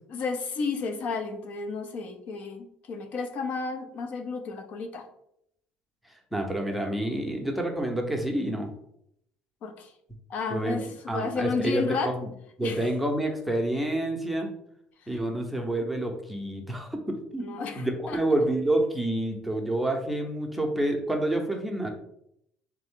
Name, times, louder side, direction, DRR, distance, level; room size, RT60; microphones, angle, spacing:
voice 1, 0.1-5.1 9.6-9.9 10.3-12.1 12.6-12.8 17.4-18.2, left 4 dB, 60° left, 7 dB, 0.7 m, -32 dB
voice 2, 6.3-8.7 10.5-10.8 11.1-12.3 12.6-14.5 15.1-21.9, right 1 dB, ahead, 1 dB, 0.7 m, -28 dB
3.7 x 3.4 x 3.6 m, 0.75 s
cardioid pair, 115°, 3 cm